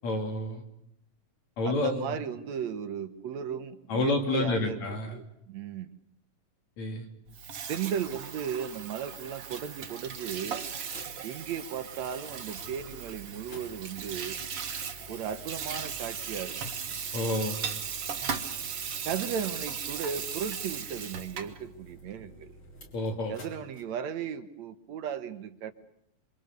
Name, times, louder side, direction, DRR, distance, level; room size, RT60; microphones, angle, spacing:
voice 1, 0.0-0.6 1.6-2.2 3.9-5.2 6.8-7.1 17.1-17.6 22.9-23.3, left 2 dB, 65° left, 3 dB, 4.3 m, -29 dB
voice 2, 1.6-5.9 7.7-10.7 11.2-14.4 15.1-16.6 19.0-22.6 23.3-25.7, right 8 dB, 70° right, 10 dB, 2.4 m, -36 dB
Water tap faucet / Sink (filling or washing), 7.3-21.6, right 7 dB, 55° right, 2.4 m, -37 dB
sound 1, 10.3-23.8, equal, 40° left, 5.7 m, -52 dB
27.5 x 24.5 x 6.8 m, 0.77 s
omnidirectional pair, 3.4 m